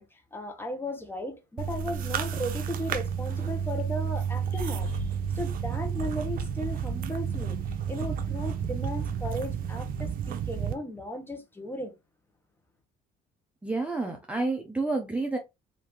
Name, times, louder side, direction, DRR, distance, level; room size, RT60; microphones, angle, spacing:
voice 1, 0.0-7.6 7.9-11.9, equal, 10° left, 1.1 m, -36 dB
sound 1, 1.6-10.7, right 7 dB, 60° right, 0.7 m, -31 dB
voice 2, 13.6-15.4, right 3 dB, 5° right, 0.7 m, -29 dB
3.7 x 2.8 x 3.0 m
cardioid pair, 110°, 17 cm